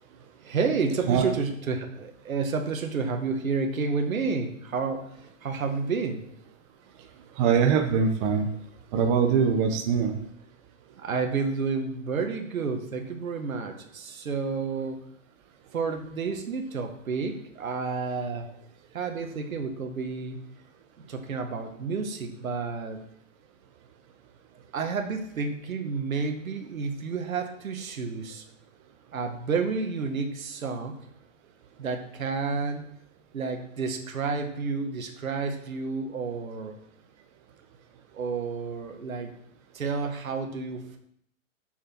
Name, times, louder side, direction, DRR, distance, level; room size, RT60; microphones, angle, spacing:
voice 1, 0.4-5.1 5.4-6.3 11.0-15.0 15.7-18.5 18.9-20.4 21.0-23.0 24.7-28.5 29.1-31.0 31.8-32.9 33.3-36.8 38.1-39.3 39.7-41.0, right 4 dB, 90° right, 5 dB, 2.0 m, -30 dB
voice 2, 7.4-8.5 8.9-10.1, right 6 dB, 25° right, 3 dB, 0.9 m, -22 dB
7.1 x 6.5 x 7.8 m, 0.71 s
hypercardioid pair, 155°, 40 cm